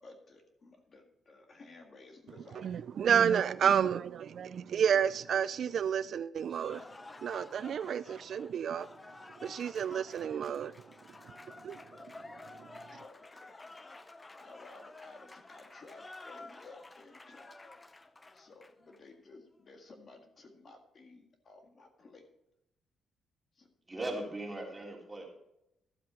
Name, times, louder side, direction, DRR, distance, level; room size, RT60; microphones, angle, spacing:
voice 1, 0.0-2.8 12.9-13.6 14.4-17.5 18.3-22.3 23.5-23.7, left 3 dB, 40° left, 4 dB, 1.8 m, -55 dB
voice 2, 2.6-6.8 7.2-8.9 9.4-10.9 11.2-13.0, right 8 dB, 60° right, 15 dB, 0.3 m, -31 dB
Cheering / Applause, 6.4-19.0, left 2 dB, 20° left, 0.6 m, -51 dB
voice 3, 23.9-25.2, right 1 dB, 15° right, -2 dB, 3.4 m, -38 dB
12.5 x 7.6 x 4.3 m, 0.85 s
cardioid pair, 110°, 0 cm